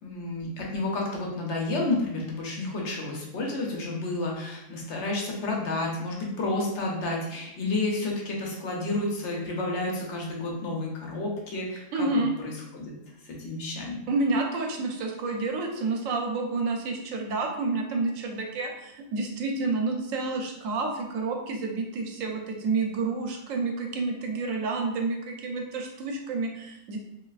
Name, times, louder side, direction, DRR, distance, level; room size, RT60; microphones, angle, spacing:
voice 1, 0.0-12.1 12.4-12.9 13.3-14.0, left 2 dB, 65° left, -2 dB, 0.9 m, -30 dB
voice 2, 11.9-12.3 14.1-27.0, right 3 dB, 85° right, 2 dB, 1.0 m, -29 dB
3.1 x 2.5 x 2.4 m, 0.85 s
omnidirectional pair, 1.3 m